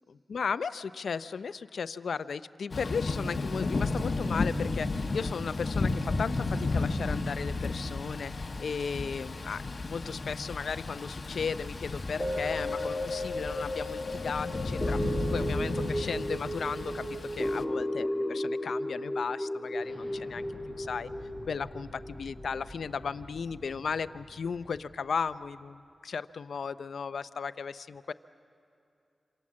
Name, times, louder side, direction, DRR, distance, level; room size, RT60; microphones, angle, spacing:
voice 1, 0.1-17.0 17.3-21.1 21.5-28.1, left 5 dB, 80° left, 13 dB, 0.5 m, -35 dB
Thunder / Rain, 2.7-17.6, left 3 dB, 45° left, 1.1 m, -33 dB
sound 1, 12.2-22.6 23.0-23.1, left 1 dB, 10° left, 1.3 m, -34 dB
Explosion, 19.8-25.3, equal, 25° right, 7.6 m, -49 dB
27.0 x 26.5 x 7.5 m, 2.7 s
wide cardioid pair, 110°, 0 cm